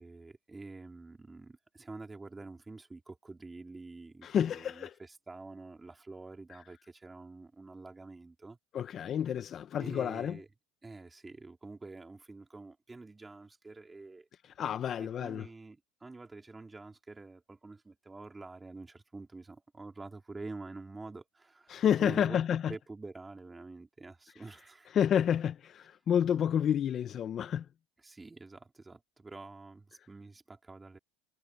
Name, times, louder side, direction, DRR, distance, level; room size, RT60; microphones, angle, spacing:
voice 1, 0.0-8.6 9.8-10.5 10.8-14.3 15.0-22.4 22.7-25.0 28.0-31.0, right 3 dB, 15° right, 3.6 m, -47 dB
voice 2, 4.2-4.9 8.7-10.4 14.6-15.5 21.7-22.7 24.9-27.7, left 9 dB, 35° left, 0.8 m, -29 dB
supercardioid pair, 120°, 0 cm